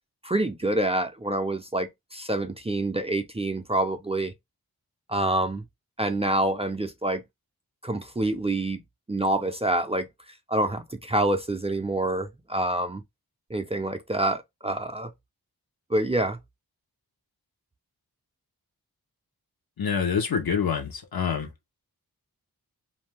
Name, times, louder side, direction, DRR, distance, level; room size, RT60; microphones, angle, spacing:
voice 1, 0.2-4.3 5.1-5.6 6.0-7.2 7.8-8.8 9.1-10.1 10.5-13.0 13.5-15.1 15.9-16.4, right 1 dB, 15° right, 0.4 m, -27 dB
voice 2, 19.8-21.5, left 6 dB, 70° left, 0.9 m, -26 dB
2.6 x 2.2 x 3.2 m
wide cardioid pair, 75°, 38 cm